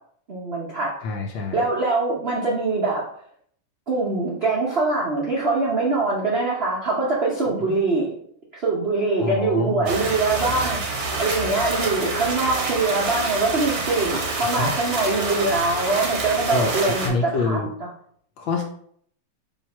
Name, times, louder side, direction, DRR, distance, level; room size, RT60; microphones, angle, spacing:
voice 1, 0.3-0.9 1.5-3.0 3.9-8.2 8.5-17.6, right 3 dB, 75° right, -5 dB, 0.5 m, -23 dB
voice 2, 1.0-1.6 9.2-9.9 14.5-14.7 16.5-17.7 18.4-18.6, left 3 dB, 75° left, 2 dB, 1.1 m, -26 dB
sound 1, 9.9-17.1, right 3 dB, 60° right, 1.1 m, -27 dB
3.6 x 3.1 x 4.2 m, 0.64 s
omnidirectional pair, 2.4 m